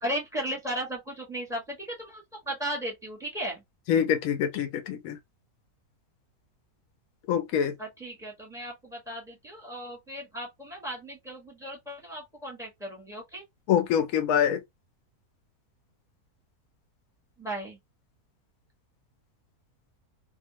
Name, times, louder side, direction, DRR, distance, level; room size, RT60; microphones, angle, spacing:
voice 1, 0.0-3.6 7.8-13.4 17.4-17.8, right 1 dB, ahead, 1.1 m, -36 dB
voice 2, 3.9-5.2 7.3-7.7 13.7-14.6, left 8 dB, 70° left, 1.0 m, -25 dB
2.7 x 2.4 x 2.8 m
omnidirectional pair, 1.6 m